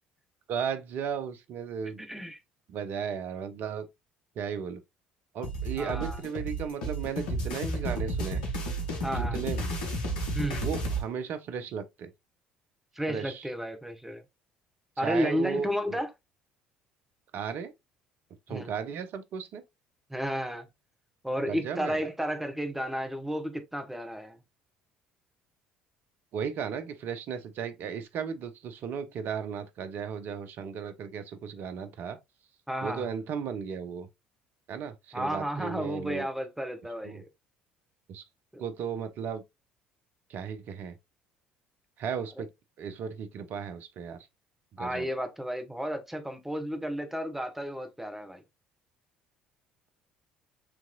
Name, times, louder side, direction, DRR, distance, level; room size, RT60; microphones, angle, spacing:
voice 1, 0.5-2.0 2.7-3.9 4.4-4.8 5.3-8.4 9.0-9.7 10.6-12.1 13.1-13.5 15.0-16.0 17.3-17.7 18.5-19.6 21.5-22.0 26.3-32.2 32.8-34.1 34.7-36.3 37.0-37.2 38.1-38.2 38.6-39.4 40.3-40.9 42.0-42.5 42.8-44.3 44.7-45.1, right 7 dB, 55° right, 0.7 m, -35 dB
voice 2, 2.0-2.4 5.8-6.2 9.0-9.4 10.3-10.6 12.9-14.2 15.0-16.1 18.5-18.7 20.1-20.7 21.2-24.4 32.7-33.1 35.1-37.2 38.5-38.6 44.8-48.4, equal, 5° right, 1.2 m, -32 dB
sound 1, 5.4-11.0, right 1 dB, 75° left, 1.1 m, -32 dB
6.1 x 3.0 x 2.3 m
hypercardioid pair, 55°, 4 cm